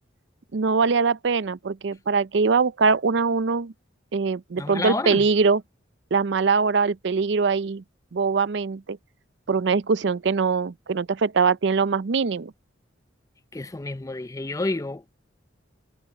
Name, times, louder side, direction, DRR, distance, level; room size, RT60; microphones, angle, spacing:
voice 1, 0.5-3.7 4.1-5.6 6.1-7.8 8.1-9.0 9.5-12.5, right 5 dB, 65° right, 0.5 m, -22 dB
voice 2, 4.6-5.3 13.5-15.2, left 2 dB, 15° left, 0.5 m, -30 dB
head